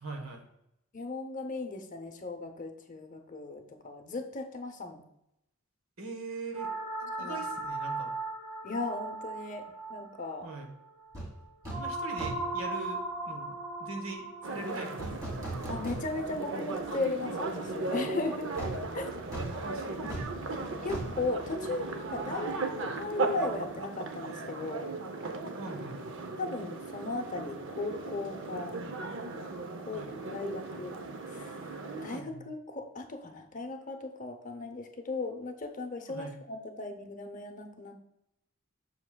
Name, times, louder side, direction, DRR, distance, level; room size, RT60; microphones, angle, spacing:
voice 1, 0.0-0.4 6.0-6.7 7.0-8.1 10.4-10.7 11.7-15.3 19.2-20.3 25.5-26.0 29.9-30.1 32.1-32.5 36.1-36.3, right 3 dB, 85° right, 4 dB, 1.2 m, -42 dB
voice 2, 0.9-5.1 7.2-7.4 8.6-10.5 15.7-18.5 18.9-19.1 20.8-24.9 26.4-28.7 29.3-29.5 29.9-31.0 31.3-31.5 32.0-38.0, left 3 dB, 40° left, 5 dB, 0.7 m, -37 dB
sound 1, 6.5-16.7, right 2 dB, 40° right, 1.9 m, -38 dB
sound 2, 11.1-11.3 11.6-11.9 12.2-12.6 15.0-16.4 16.8-16.9 18.6-22.2 22.5-22.6, right 1 dB, 15° right, 2.2 m, -39 dB
sound 3, 14.4-32.2, right 3 dB, 60° right, 0.6 m, -37 dB
7.3 x 6.6 x 2.2 m, 0.82 s
head